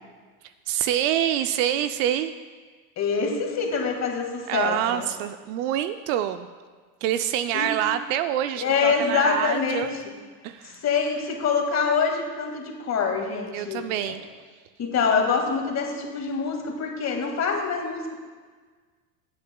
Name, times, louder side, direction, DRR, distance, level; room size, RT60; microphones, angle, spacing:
voice 1, 0.7-2.3 4.5-6.5 7.0-9.9 10.4-10.8 13.5-14.2, right 11 dB, 55° right, 11 dB, 0.5 m, -26 dB
voice 2, 3.0-5.1 7.5-7.7 8.6-10.0 10.6-14.2 14.8-18.1, left 5 dB, 30° left, 2 dB, 1.9 m, -25 dB
16.0 x 8.4 x 2.2 m, 1.5 s
hypercardioid pair, 105°, 50 cm